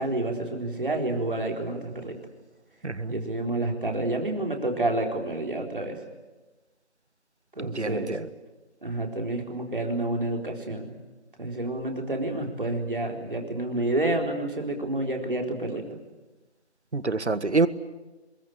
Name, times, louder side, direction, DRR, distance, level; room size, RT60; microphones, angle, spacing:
voice 1, 0.0-2.2 3.1-6.0 7.6-8.1 8.8-10.9 11.4-15.9, right 2 dB, 50° right, 2 dB, 4.1 m, -29 dB
voice 2, 7.7-8.3 16.9-17.7, right 3 dB, 75° right, 14 dB, 1.5 m, -26 dB
24.0 x 22.0 x 8.9 m, 1.1 s
figure-of-eight pair, 175°, 34 cm